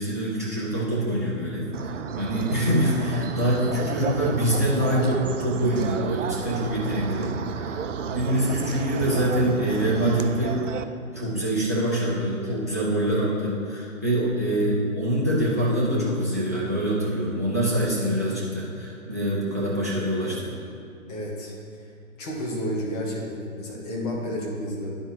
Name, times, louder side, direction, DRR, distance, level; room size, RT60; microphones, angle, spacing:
voice 1, 0.0-7.8 8.1-10.6 11.1-20.5, right 1 dB, 10° right, -6 dB, 0.4 m, -25 dB
sound 1, 1.7-10.8, right 7 dB, 60° right, 0.5 m, -32 dB
voice 2, 21.1-21.5 21.8-21.9 22.2-25.0, equal, 25° left, -3 dB, 1.5 m, -31 dB
11.0 x 4.3 x 4.6 m, 2.6 s
hypercardioid pair, 150°, 43 cm